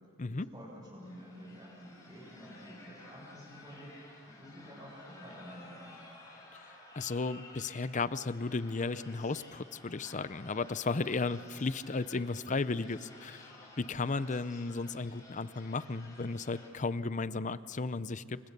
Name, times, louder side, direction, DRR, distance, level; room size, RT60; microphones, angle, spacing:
voice 1, 0.3-6.0, equal, 15° right, -8 dB, 6.8 m, -50 dB
sound 1, 1.0-16.7, left 2 dB, 15° left, 5.9 m, -54 dB
voice 2, 6.9-18.4, left 3 dB, 35° left, 15 dB, 0.6 m, -34 dB
29.0 x 25.0 x 6.7 m, 2.2 s
head